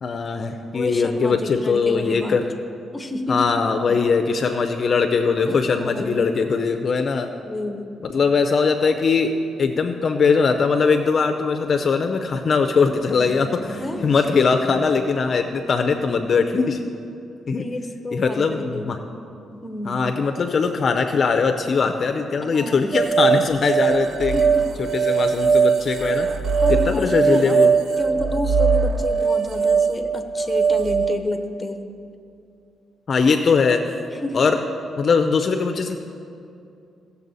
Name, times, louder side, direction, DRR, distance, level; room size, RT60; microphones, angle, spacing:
voice 1, 0.0-2.4 3.3-7.3 8.1-9.3 9.6-16.8 17.5-17.6 18.1-19.0 19.9-24.4 24.9-26.3 26.7-27.7 33.1-33.8 34.3-34.6 35.0-36.0, left 5 dB, 45° left, 6 dB, 0.5 m, -21 dB
voice 2, 0.7-2.4 2.9-3.5 3.9-4.1 5.5-6.3 7.4-7.9 13.8-14.4 17.5-18.9 19.5-20.2 22.4-23.1 24.3-24.7 26.6-27.6 28.0-31.9 34.1-34.5, left 2 dB, 10° left, 6 dB, 0.8 m, -30 dB
sound 1, 12.9-15.8, right 1 dB, 10° right, 2.2 m, -40 dB
sound 2, 22.9-31.2, right 5 dB, 50° right, 0.4 m, -20 dB
16.5 x 7.0 x 4.0 m, 2.6 s
cardioid pair, 120°, 0 cm